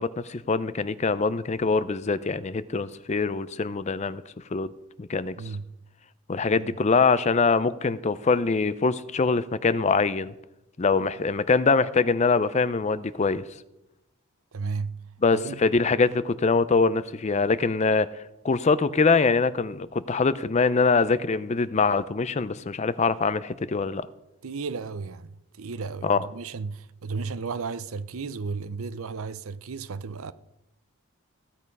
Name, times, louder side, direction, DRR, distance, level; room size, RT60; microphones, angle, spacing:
voice 1, 0.0-4.2 4.5-4.7 5.0-5.4 6.3-10.3 10.8-13.4 15.2-18.1 18.4-24.1 26.0-26.3, left 4 dB, 30° left, 0.5 m, -23 dB
voice 2, 5.4-5.7 6.5-6.7 14.5-15.0 15.3-15.7 24.4-25.3 25.6-30.3, right 4 dB, 70° right, 0.6 m, -34 dB
15.5 x 8.5 x 5.4 m
head